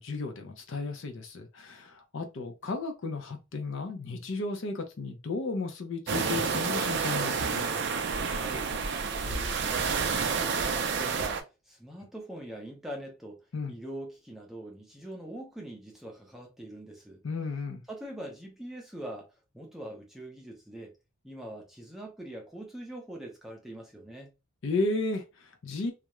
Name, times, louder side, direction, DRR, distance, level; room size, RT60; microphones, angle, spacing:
voice 1, 0.0-7.7 13.5-13.7 17.2-17.8 24.6-25.9, left 3 dB, 60° left, 0.5 m, -34 dB
sound 1, 6.1-11.4, right 5 dB, 50° right, 0.4 m, -29 dB
voice 2, 8.3-13.4 13.7-17.2 17.9-19.3 19.5-20.9 21.2-24.3, right 1 dB, ahead, 0.5 m, -43 dB
2.4 x 2.1 x 2.9 m
head